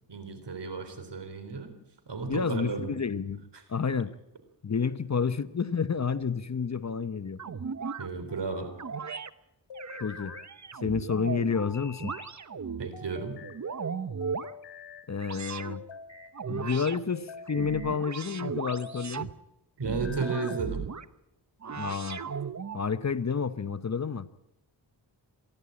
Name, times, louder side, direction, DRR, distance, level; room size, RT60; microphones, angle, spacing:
voice 1, 0.1-1.7 2.1-2.9 7.5-8.7 12.8-13.4 19.8-20.8, right 4 dB, 65° right, 9 dB, 3.7 m, -34 dB
voice 2, 2.2-4.1 4.6-7.4 10.0-10.3 10.8-12.2 15.1-15.8 16.5-19.3 21.8-22.2 22.7-24.3, left 5 dB, 35° left, 14 dB, 0.9 m, -30 dB
sound 1, 6.0-6.7 8.1-8.9 9.7-10.5 11.5-12.3 12.9-13.6 14.2-15.1 15.7-16.4 17.1-18.0 18.6-19.1 19.9-20.7, left 5 dB, 70° left, 2.7 m, -46 dB
sound 2, 7.4-8.1 8.8-9.3 9.7-11.6 12.0-12.9 13.4-14.5 15.2-15.8 16.3-17.0 17.5-19.3 19.8-21.1 21.6-22.8, right 6 dB, 40° right, 1.0 m, -36 dB
27.0 x 11.5 x 8.7 m, 0.87 s
cardioid pair, 60°, 45 cm